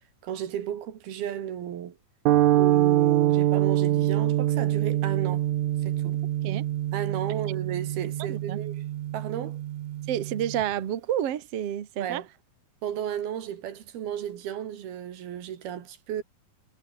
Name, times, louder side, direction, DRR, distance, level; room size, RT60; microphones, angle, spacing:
voice 1, 0.2-2.0 2.5-5.5 5.8-6.2 6.9-8.8 9.1-9.6 12.0-12.3 12.8-16.2, right 10 dB, 85° right, 4.1 m, -34 dB
sound 1, 2.3-10.6, right 13 dB, 65° right, 2.1 m, -25 dB
voice 2, 8.2-8.6 10.1-12.2, right 10 dB, 50° right, 2.3 m, -30 dB
omnidirectional pair, 4.3 m